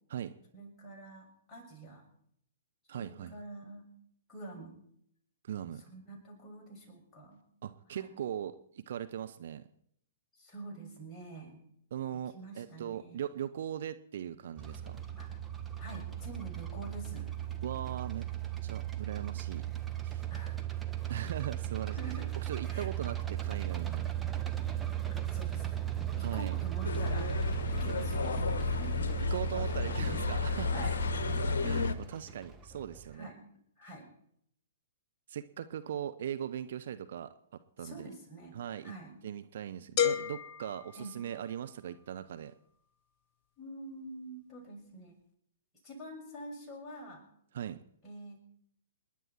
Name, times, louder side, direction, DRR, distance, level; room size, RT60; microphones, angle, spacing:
voice 1, 0.5-2.0 2.9-3.9 4.3-4.8 5.9-7.4 7.9-8.1 10.4-11.6 12.3-13.2 15.2-15.3 15.8-17.3 20.3-20.6 21.9-22.3 22.7-22.9 25.2-25.7 26.2-27.3 27.8-28.4 28.6-29.1 29.6-30.1 30.7-31.0 33.1-33.4 33.8-34.1 37.8-39.2 41.0-41.2 43.6-45.2 45.8-47.3 48.0-48.4, right 1 dB, 15° left, -3 dB, 6.9 m, -46 dB
voice 2, 2.9-3.3 5.4-5.8 7.6-9.6 11.9-15.0 17.6-18.3 18.6-19.7 20.0-20.2 21.1-22.0 22.4-24.1 26.2-26.6 29.3-30.9 31.6-33.3 35.3-37.3 37.8-38.1 38.5-38.9 39.2-42.5 47.5-47.8, right 10 dB, 55° right, 10 dB, 0.8 m, -39 dB
sound 1, 14.6-33.2, right 12 dB, 10° right, 1.6 m, -37 dB
sound 2, 26.8-31.9, left 4 dB, 60° left, 1.4 m, -32 dB
sound 3, 40.0-41.8, left 9 dB, 35° left, 1.3 m, -33 dB
28.0 x 11.0 x 4.5 m, 0.69 s
figure-of-eight pair, 115°, 0 cm